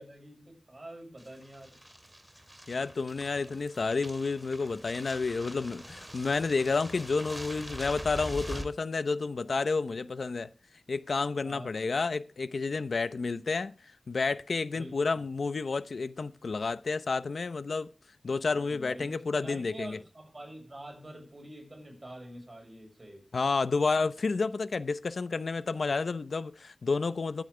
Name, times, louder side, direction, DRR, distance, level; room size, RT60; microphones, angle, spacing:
voice 1, 0.0-1.8 3.3-3.5 11.4-11.8 14.7-15.2 18.5-23.3, right 1 dB, 40° right, 6.7 m, -46 dB
sound 1, 1.2-8.7, right 1 dB, 10° right, 2.6 m, -44 dB
voice 2, 2.7-10.5 10.9-13.8 14.1-17.9 18.2-20.0 23.3-27.4, left 4 dB, 90° left, 0.8 m, -30 dB
22.0 x 9.0 x 3.4 m
wide cardioid pair, 65°, 0 cm